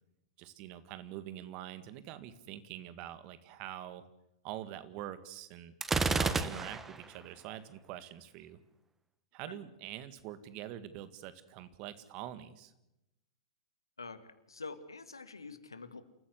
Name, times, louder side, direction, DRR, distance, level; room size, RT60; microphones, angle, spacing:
voice 1, 0.4-4.1 4.4-5.7 6.1-8.6 9.3-12.7, right 12 dB, 40° right, 13 dB, 1.8 m, -45 dB
Gunshot gunfire, 5.8-7.0, right 4 dB, 10° right, 1.3 m, -30 dB
voice 2, 14.5-16.0, left 4 dB, 80° left, 10 dB, 2.1 m, -46 dB
28.0 x 14.5 x 7.9 m, 0.90 s
figure-of-eight pair, 105°, 2 cm